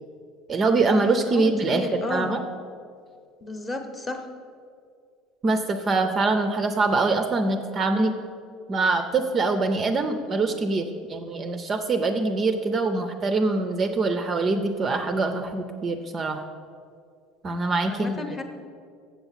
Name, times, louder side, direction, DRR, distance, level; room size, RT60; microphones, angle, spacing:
voice 1, 0.5-2.4 5.4-8.1 8.7-16.4 17.4-18.4, right 3 dB, 25° right, 7 dB, 0.4 m, -24 dB
voice 2, 1.3-2.3 3.4-4.2 17.8-18.4, left 3 dB, 15° left, 5 dB, 0.8 m, -32 dB
7.3 x 7.0 x 7.3 m, 2.2 s
cardioid pair, 165°, 0 cm